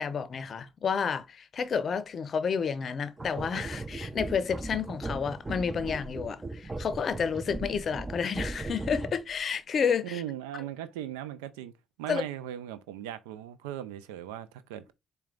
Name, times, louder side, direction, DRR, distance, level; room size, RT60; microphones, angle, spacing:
voice 1, 0.0-10.2 12.1-12.2, left 6 dB, 55° left, 0.5 m, -30 dB
sound 1, 3.2-9.4, right 2 dB, 25° right, 0.6 m, -38 dB
voice 2, 10.0-11.7 12.0-14.9, right 11 dB, 90° right, 0.4 m, -38 dB
4.3 x 2.2 x 3.7 m
hypercardioid pair, 55°, 0 cm